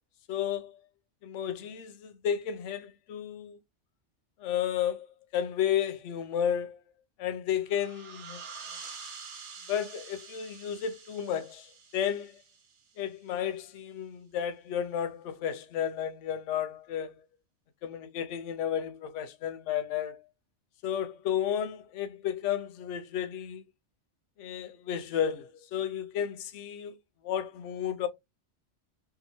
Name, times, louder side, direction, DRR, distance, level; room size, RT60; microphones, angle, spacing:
voice 1, 0.3-0.8 1.2-3.6 4.4-5.1 5.3-6.8 7.2-8.4 9.7-12.4 13.0-17.2 17.8-20.2 20.8-23.6 24.4-27.0 27.2-28.1, left 9 dB, 85° left, 0.9 m, -32 dB
sound 1, 7.7-13.1, right 5 dB, 55° right, 0.7 m, -47 dB
2.9 x 2.3 x 2.6 m
omnidirectional pair, 1.2 m